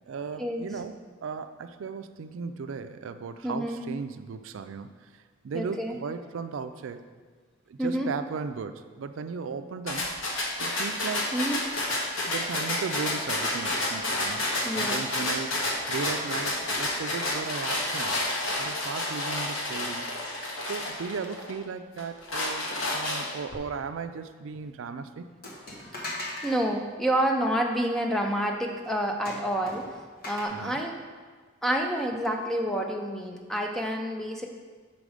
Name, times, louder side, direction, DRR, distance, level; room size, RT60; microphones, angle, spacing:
voice 1, 0.1-0.9 1.2-5.1 5.4-7.0 7.7-10.1 10.6-11.4 12.2-15.5 15.9-18.2 18.6-20.0 20.6-25.3 30.5-30.8, right 5 dB, 80° right, 9 dB, 0.4 m, -36 dB
voice 2, 3.4-3.8 5.5-6.0 7.8-8.1 11.3-11.6 14.6-15.0 26.4-29.9 30.3-30.9 31.6-34.5, right 1 dB, ahead, 2 dB, 0.4 m, -28 dB
sound 1, 9.9-21.5 22.0-23.5, left 1 dB, 85° left, 1.2 m, -30 dB
sound 2, 25.4-26.6 29.3-30.5, left 1 dB, 45° left, 1.2 m, -38 dB
6.0 x 5.2 x 4.9 m, 1.5 s
head